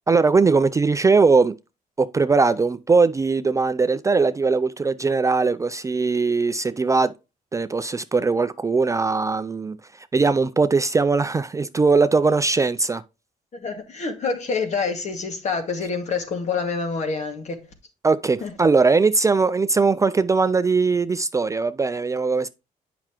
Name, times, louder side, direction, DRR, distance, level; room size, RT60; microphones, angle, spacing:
voice 1, 0.1-1.6 2.0-7.1 7.5-13.0 18.0-22.5, right 4 dB, 20° right, 0.4 m, -20 dB
voice 2, 13.5-17.6 18.4-18.5, left 4 dB, 50° left, 2.0 m, -27 dB
8.5 x 5.9 x 2.9 m
cardioid pair, 95°, 15 cm